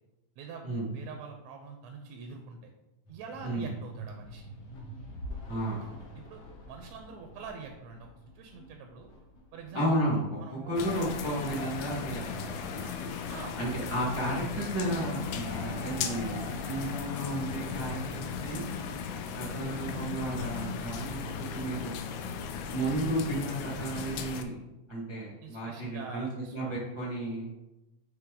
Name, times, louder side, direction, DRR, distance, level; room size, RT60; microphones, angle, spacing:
voice 1, 0.9-2.6 3.1-4.5 6.2-8.1 8.3-9.1 9.5-10.1 10.4-10.9 13.3-14.2 25.4-26.8, right 5 dB, 75° right, 4 dB, 1.8 m, -45 dB
sound 1, 3.0-15.6, equal, 60° left, 2.1 m, -49 dB
voice 2, 5.5-5.9 9.7-12.9 13.6-18.7 19.4-21.9 22.6-24.6 24.9-26.3 26.5-27.4, right 1 dB, 35° right, -6 dB, 0.4 m, -33 dB
Cheering / Applause / Crowd, 10.6-19.5, left 1 dB, 15° left, 1.1 m, -48 dB
sound 2, 10.8-24.4, left 6 dB, 85° left, 1.4 m, -37 dB
9.0 x 3.2 x 3.7 m, 1.0 s
omnidirectional pair, 3.4 m